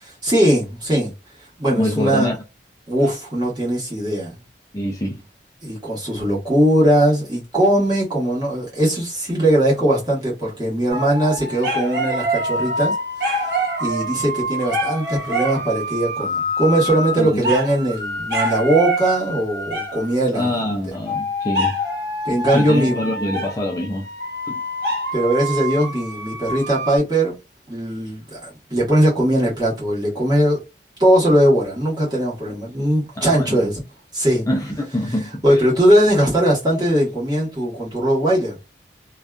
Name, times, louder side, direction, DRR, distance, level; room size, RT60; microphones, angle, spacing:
voice 1, 0.0-1.1 1.6-2.3 2.9-4.4 5.6-20.5 22.2-23.0 25.1-27.3 27.7-30.6 31.0-33.8 34.1-34.5 35.4-38.6, right 1 dB, 25° right, 1.2 m, -19 dB
voice 2, 1.7-2.4 4.7-5.2 17.2-17.5 20.3-21.8 22.5-24.1 24.5-24.6 33.2-33.6 34.5-35.6, left 1 dB, 20° left, 0.4 m, -25 dB
sound 1, 10.9-20.2 21.1-27.0, equal, 75° right, 1.0 m, -26 dB
2.6 x 2.2 x 2.3 m
head